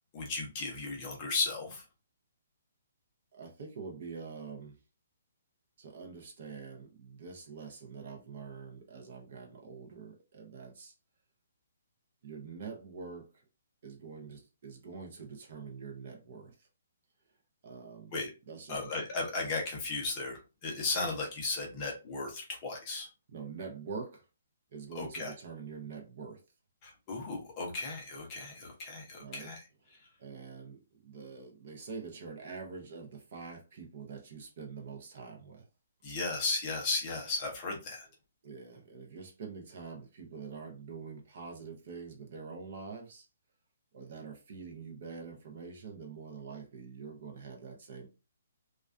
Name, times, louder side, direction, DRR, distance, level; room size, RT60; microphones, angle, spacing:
voice 1, 0.1-1.8 18.1-18.3 18.7-23.1 24.9-25.3 26.8-29.6 29.9-30.1 36.0-38.1, left 3 dB, 20° left, 0.6 m, -35 dB
voice 2, 3.3-4.8 5.8-10.9 12.2-13.3 13.8-16.7 17.6-18.1 18.5-19.0 23.3-24.2 24.7-26.4 29.2-29.5 30.2-35.7 38.4-43.3 43.9-48.1, right 5 dB, 40° right, 0.5 m, -45 dB
2.3 x 2.2 x 2.4 m
hypercardioid pair, 175°, 0 cm